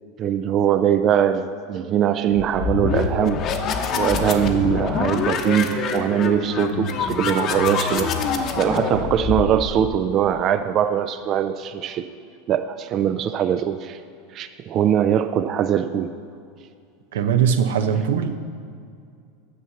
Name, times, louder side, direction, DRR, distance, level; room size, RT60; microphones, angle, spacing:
voice 1, 0.2-3.4 3.9-8.1 8.6-12.0 12.5-14.0 14.3-16.1, right 9 dB, 40° right, 10 dB, 0.4 m, -21 dB
sound 1, 2.3-10.0, left 5 dB, 45° left, 0.9 m, -25 dB
voice 2, 17.1-18.4, right 7 dB, 85° right, 8 dB, 0.7 m, -21 dB
9.2 x 5.7 x 7.1 m, 2.3 s
supercardioid pair, 115°, 0 cm